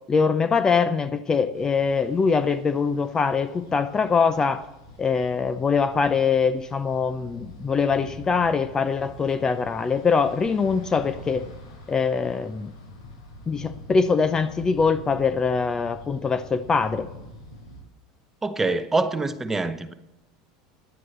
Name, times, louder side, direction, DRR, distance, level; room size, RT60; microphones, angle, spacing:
voice 1, 0.1-4.6 5.0-11.5 11.9-12.7 13.5-17.1, left 5 dB, 20° left, 0.6 m, -23 dB
sound 1, 1.5-17.8, left 1 dB, 80° left, 5.4 m, -45 dB
voice 2, 18.4-19.9, right 3 dB, 10° right, 0.9 m, -25 dB
10.5 x 9.6 x 7.8 m
supercardioid pair, 120°, 3 cm